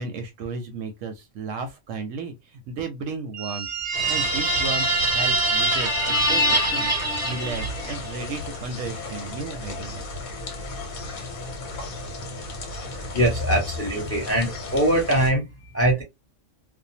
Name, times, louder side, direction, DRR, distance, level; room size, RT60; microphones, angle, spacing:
voice 1, 0.0-10.0, right 4 dB, 70° right, 0.8 m, -34 dB
sound 1, 3.3-8.1, right 2 dB, 20° right, 0.4 m, -24 dB
sound 2, 3.9-15.3, left 2 dB, 75° left, 1.3 m, -35 dB
voice 2, 13.1-16.0, right 1 dB, 15° left, 0.7 m, -22 dB
2.6 x 2.1 x 2.7 m
omnidirectional pair, 1.5 m